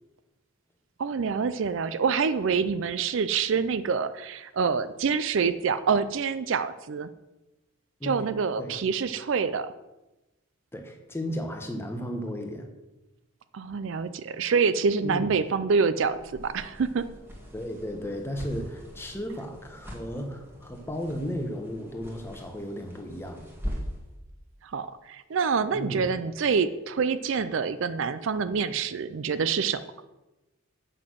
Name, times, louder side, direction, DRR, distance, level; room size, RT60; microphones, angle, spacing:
voice 1, 1.0-7.1 8.0-9.7 13.5-17.0 24.6-29.8, right 5 dB, 60° right, 13 dB, 0.4 m, -26 dB
voice 2, 10.7-12.7 15.0-15.3 17.5-23.4 25.7-26.1, equal, 10° left, 4 dB, 1.1 m, -34 dB
sound 1, 16.0-24.1, equal, 10° right, 1.6 m, -41 dB
7.9 x 6.1 x 6.2 m, 1.0 s
head